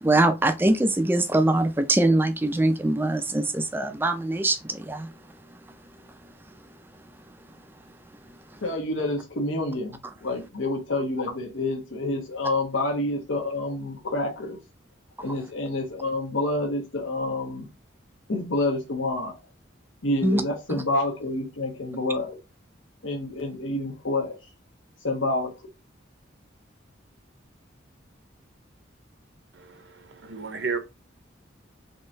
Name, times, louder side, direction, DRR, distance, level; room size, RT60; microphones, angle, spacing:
voice 1, 0.0-5.1 20.2-20.4, right 2 dB, 10° right, 0.4 m, -22 dB
voice 2, 8.6-14.6 15.2-17.7 18.3-19.4 20.0-22.4 23.0-24.4 25.0-25.5, left 2 dB, 85° left, 1.1 m, -28 dB
voice 3, 29.5-30.8, right 5 dB, 70° right, 0.8 m, -33 dB
3.8 x 3.0 x 2.6 m
head